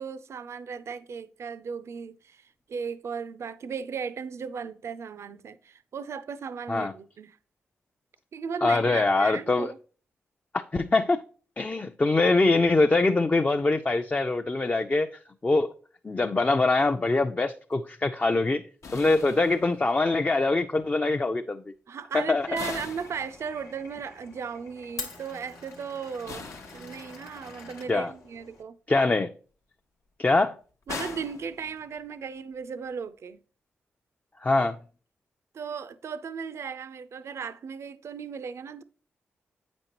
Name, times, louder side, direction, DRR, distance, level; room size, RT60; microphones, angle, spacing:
voice 1, 0.0-7.4 8.3-9.8 21.9-26.5 26.7-28.8 30.9-33.4 35.5-38.8, right 6 dB, 65° right, 0.4 m, -36 dB
voice 2, 8.6-9.7 10.7-11.2 11.6-15.1 15.4-15.7 16.0-18.6 18.9-21.6 22.1-22.5 27.9-28.1 28.9-29.3 30.2-30.6 34.4-34.8, left 3 dB, 30° left, 0.4 m, -23 dB
sound 1, 18.8-20.1 22.5-23.9 26.3-27.4 30.9-32.2, left 4 dB, 70° left, 0.7 m, -41 dB
Glass, 22.4-28.6, left 3 dB, 85° left, 1.0 m, -45 dB
8.1 x 5.2 x 2.9 m
supercardioid pair, 45°, 5 cm